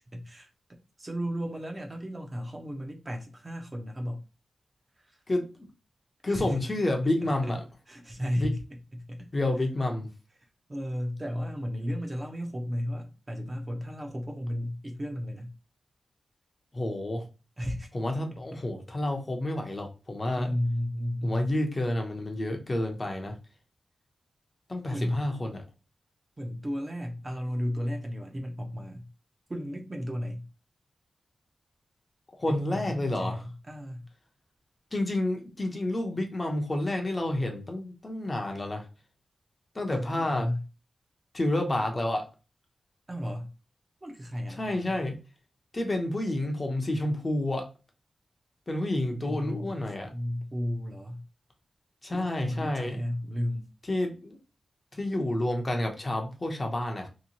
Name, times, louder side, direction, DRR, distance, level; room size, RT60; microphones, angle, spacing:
voice 1, 0.1-0.5 1.0-4.2 5.0-5.2 6.3-6.6 7.4-7.5 7.9-9.3 10.7-15.5 17.6-17.9 18.3-18.4 20.4-21.5 24.9-25.2 26.4-29.1 29.5-30.5 32.5-34.1 39.9-40.6 43.1-43.5 44.0-45.0 49.1-51.2 52.1-53.7, equal, 25° right, 0.7 m, -34 dB
voice 2, 5.3-5.7 6.2-7.6 8.4-8.5 9.3-10.1 16.7-17.3 17.9-20.5 21.2-23.3 24.7-25.6 32.3-33.4 34.9-38.9 39.7-40.5 41.3-42.3 44.5-45.2 45.7-47.7 48.7-50.1 52.0-53.0 53.9-54.4 54.9-57.1, left 1 dB, 25° left, 0.7 m, -29 dB
3.0 x 2.9 x 2.8 m
wide cardioid pair, 140°, 0 cm